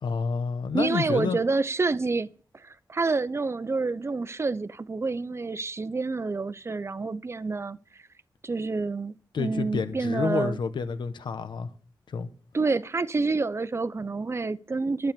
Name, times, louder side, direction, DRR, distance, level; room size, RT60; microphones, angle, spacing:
voice 1, 0.0-1.4 9.3-11.7 12.1-12.3, left 5 dB, 85° left, 1.1 m, -29 dB
voice 2, 0.7-7.8 8.4-10.6 12.5-15.1, right 3 dB, 35° right, 0.7 m, -28 dB
12.0 x 8.0 x 6.9 m
wide cardioid pair, 85°, 8 cm